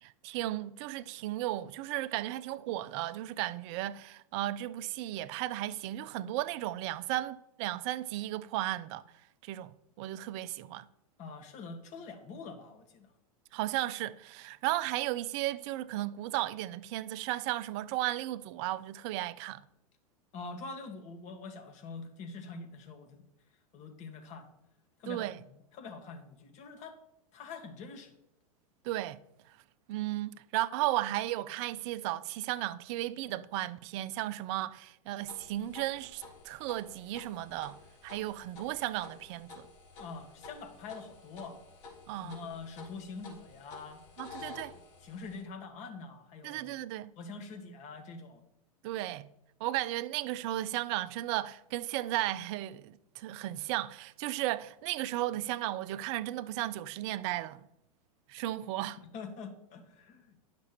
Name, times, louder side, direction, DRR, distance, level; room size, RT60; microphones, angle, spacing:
voice 1, 0.0-9.0 9.4-10.9 13.5-19.6 25.1-25.4 28.8-29.2 29.9-37.8 38.0-39.7 42.1-42.4 44.2-44.7 46.4-47.1 48.8-49.3 49.6-57.6 58.3-59.0, right 15 dB, 50° right, 0.5 m, -35 dB
voice 2, 11.2-13.1 20.3-23.2 23.7-24.5 25.0-27.0 27.3-28.2 40.0-41.6 42.1-44.0 44.4-46.7 47.2-48.4 59.1-60.4, left 4 dB, 40° left, 1.6 m, -45 dB
sound 1, 35.2-45.4, left 4 dB, 55° left, 3.3 m, -51 dB
10.5 x 6.0 x 4.3 m
hypercardioid pair, 105°, 19 cm